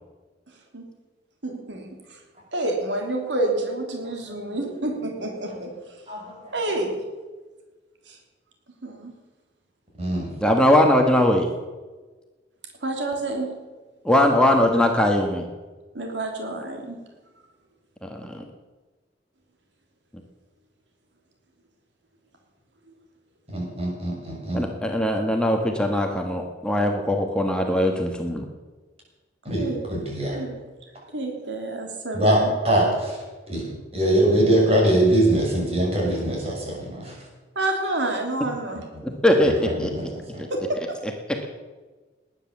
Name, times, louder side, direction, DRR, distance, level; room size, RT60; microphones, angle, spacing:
voice 1, 1.4-2.2 2.5-5.7 6.5-7.0 8.1-8.2 8.8-9.1 12.8-13.5 15.9-17.0 29.6-29.8 30.3-30.5 31.1-32.5 37.5-38.8 40.5-41.0, right 2 dB, 80° right, 2 dB, 2.9 m, -28 dB
voice 2, 6.1-6.5 10.0-10.3 23.5-24.7 29.4-30.4 32.1-33.2 33.5-33.7 33.9-37.1 39.4-40.4, right 1 dB, 35° right, -2 dB, 6.6 m, -23 dB
voice 3, 10.4-11.5 14.0-15.4 18.0-18.4 24.5-28.4 39.0-39.9, left 1 dB, 5° left, 3 dB, 1.3 m, -20 dB
19.5 x 10.0 x 7.3 m, 1.3 s
head